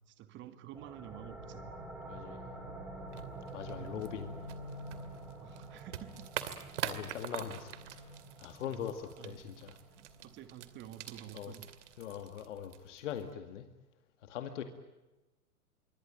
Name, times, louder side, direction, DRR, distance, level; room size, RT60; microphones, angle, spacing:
voice 1, 0.0-1.7 3.8-4.0 5.4-6.2 8.7-9.5 9.9-11.7 14.6-14.7, right 11 dB, 25° right, 11 dB, 2.1 m, -50 dB
sound 1, 0.7-12.1, right 1 dB, 5° right, 6.9 m, -48 dB
voice 2, 2.1-2.4 3.5-4.4 6.8-8.1 8.4-9.8 11.3-11.5 12.0-13.6 14.2-14.6, left 9 dB, 50° left, 8 dB, 2.2 m, -41 dB
sound 2, 3.1-13.3, right 10 dB, 50° right, 2.6 m, -45 dB
26.0 x 24.0 x 9.0 m, 1.1 s
figure-of-eight pair, 115°, 45 cm